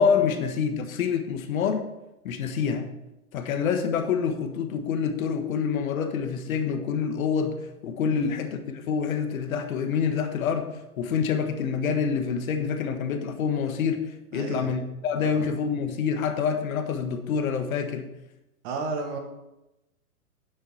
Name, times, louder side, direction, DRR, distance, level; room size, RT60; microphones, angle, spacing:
voice 1, 0.0-1.9 2.2-2.9 3.3-18.1, left 6 dB, 60° left, 7 dB, 1.6 m, -27 dB
voice 2, 14.3-14.7 15.2-15.5 18.6-19.2, right 4 dB, 40° right, 4 dB, 1.9 m, -33 dB
9.5 x 7.7 x 4.4 m, 0.93 s
hypercardioid pair, 125°, 46 cm